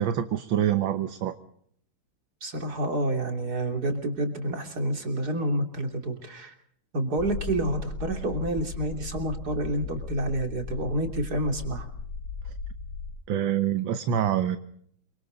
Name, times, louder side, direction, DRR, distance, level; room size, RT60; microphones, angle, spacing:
voice 1, 0.0-1.3 12.4-12.5 13.3-14.6, right 10 dB, 65° right, 9 dB, 1.8 m, -26 dB
voice 2, 2.4-6.5 6.9-11.9, right 1 dB, 45° right, 4 dB, 3.6 m, -29 dB
sound 1, 7.2-13.2, left 5 dB, 70° left, 3.1 m, -36 dB
27.5 x 25.0 x 4.0 m, 0.64 s
omnidirectional pair, 2.4 m